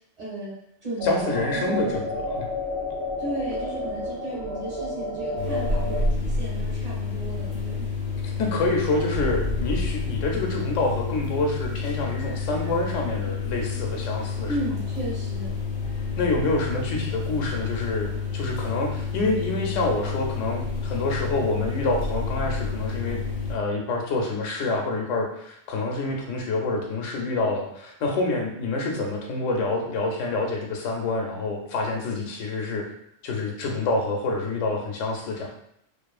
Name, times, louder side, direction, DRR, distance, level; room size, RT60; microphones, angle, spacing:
voice 1, 0.2-0.5 0.8-2.0 3.2-7.8 14.5-15.5, right 1 dB, 35° right, -6 dB, 1.0 m, -34 dB
voice 2, 1.0-2.5 8.2-14.5 16.2-23.2 23.5-32.9 33.2-35.5, left 2 dB, 80° left, 1 dB, 0.9 m, -27 dB
sound 1, 1.0-6.0, left 2 dB, 70° right, 0.8 m, -31 dB
sound 2, 5.4-23.5, left 4 dB, 50° left, 0.6 m, -29 dB
2.6 x 2.4 x 2.3 m, 0.74 s
omnidirectional pair, 1.3 m